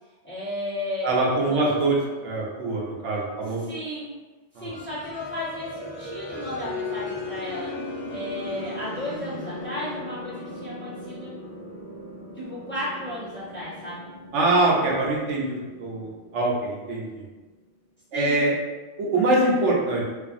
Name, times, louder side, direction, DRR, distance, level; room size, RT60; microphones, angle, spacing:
voice 1, 0.2-1.1 1.3-1.6 3.6-4.1 4.6-11.3 12.3-14.1 18.1-18.4, left 1 dB, 10° left, -11 dB, 0.9 m, -34 dB
voice 2, 1.0-3.7 4.6-4.8 14.3-17.2 18.1-18.5 19.0-20.0, right 2 dB, 75° right, -3 dB, 0.9 m, -24 dB
sound 1, 4.7-17.2, left 2 dB, 15° right, 0.4 m, -37 dB
2.6 x 2.4 x 2.5 m, 1.2 s
omnidirectional pair, 1.2 m